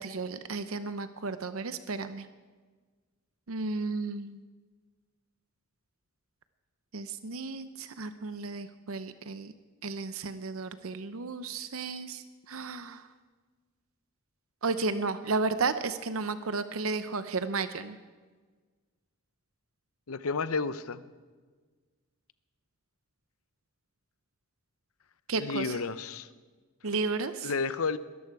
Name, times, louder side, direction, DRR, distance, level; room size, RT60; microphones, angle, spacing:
voice 1, 0.0-2.3 3.5-4.4 6.9-9.5 9.8-13.0 14.6-18.0 25.3-25.8 26.8-27.5, right 4 dB, 75° right, 11 dB, 0.7 m, -33 dB
voice 2, 20.1-21.0 25.4-26.3 27.4-28.0, left 4 dB, 85° left, 14 dB, 0.7 m, -31 dB
21.5 x 13.5 x 4.8 m, 1.4 s
head